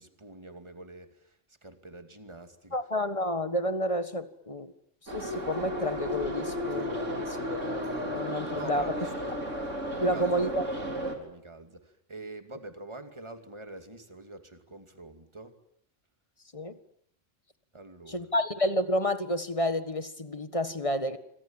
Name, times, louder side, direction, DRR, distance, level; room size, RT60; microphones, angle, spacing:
voice 1, 0.0-2.8 8.5-9.4 9.9-15.6 17.7-18.3, right 1 dB, 25° right, 7 dB, 2.6 m, -45 dB
voice 2, 2.7-4.7 5.1-8.8 10.0-10.6 16.5-16.8 18.1-21.2, equal, 25° left, 10 dB, 1.6 m, -30 dB
Subway metro underground, 5.1-11.2, equal, 80° right, 4.3 m, -34 dB
27.0 x 25.5 x 7.4 m, 0.71 s
omnidirectional pair, 1.3 m